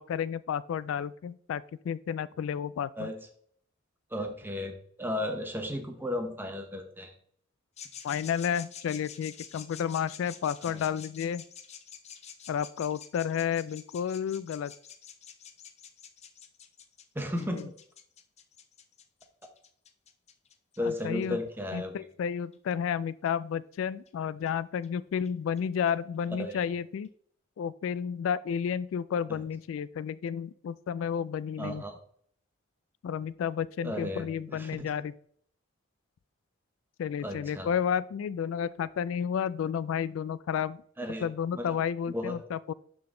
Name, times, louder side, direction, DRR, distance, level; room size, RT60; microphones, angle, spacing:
voice 1, 0.0-3.1 8.0-11.4 12.5-14.7 17.3-17.7 20.8-21.4 21.7-27.1 27.6-31.8 33.0-35.1 37.0-40.8 41.2-42.7, left 8 dB, 80° left, 18 dB, 0.3 m, -31 dB
voice 2, 3.0-3.3 4.1-7.1 10.6-10.8 17.1-17.7 20.8-22.1 26.4-26.6 29.3-29.4 31.6-32.0 33.8-34.9 37.2-37.7 41.0-41.3 41.5-41.8 42.1-42.4, left 1 dB, 10° right, 4 dB, 1.0 m, -35 dB
sound 1, 7.8-21.3 22.5-22.6 23.3-23.4 24.1-24.2 24.5-24.6 24.8-24.9 25.2-25.3 25.6-25.7 25.9-26.0 26.2-26.3 26.6-26.7 27.0-27.1, left 8 dB, 35° left, 0.6 m, -48 dB
11.5 x 3.8 x 3.8 m, 0.62 s
head